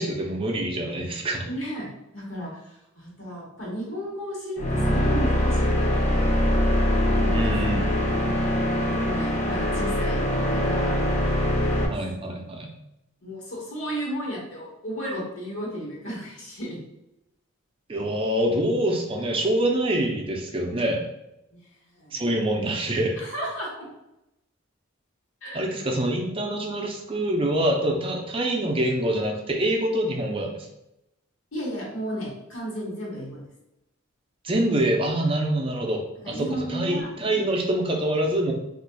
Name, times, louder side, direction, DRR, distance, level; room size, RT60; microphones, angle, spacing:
voice 1, 0.0-1.5 7.3-8.3 11.9-12.7 17.9-21.1 22.1-23.2 25.5-30.7 34.4-38.5, right 1 dB, 25° right, 1 dB, 0.4 m, -25 dB
voice 2, 1.5-6.4 7.1-7.5 8.9-11.0 12.4-12.5 13.2-16.8 21.5-21.6 21.9-22.1 23.2-23.9 25.4-25.7 31.5-33.4 36.2-37.1, equal, 70° left, -4 dB, 1.3 m, -34 dB
sound 1, 4.6-11.9, left 1 dB, 35° left, 0.5 m, -23 dB
4.2 x 2.4 x 2.2 m, 0.89 s
head